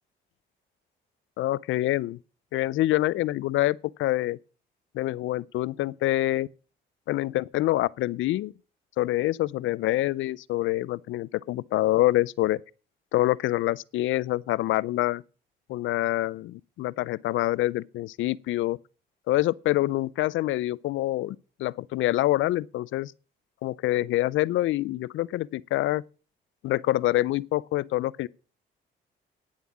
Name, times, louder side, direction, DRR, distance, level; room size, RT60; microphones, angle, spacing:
voice 1, 1.4-2.2 2.5-4.4 4.9-6.5 7.1-8.5 9.0-12.6 13.1-15.2 15.7-18.8 19.3-23.1 23.6-26.0 26.6-28.3, left 16 dB, 80° left, 0.5 m, -26 dB
10.0 x 7.5 x 7.2 m
cardioid pair, 90°, 20 cm